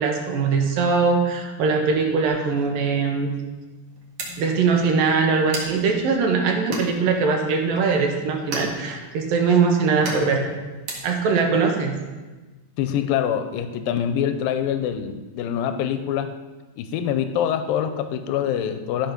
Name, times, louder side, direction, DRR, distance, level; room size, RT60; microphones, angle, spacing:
voice 1, 0.0-3.3 4.4-10.5 11.0-11.9, right 4 dB, 75° right, 2 dB, 3.0 m, -21 dB
sound 1, 2.3-11.2, right 3 dB, 55° right, 2.9 m, -35 dB
voice 2, 12.8-16.3 16.8-19.1, left 9 dB, 85° left, 9 dB, 2.4 m, -25 dB
13.5 x 5.3 x 6.0 m, 1.2 s
omnidirectional pair, 4.1 m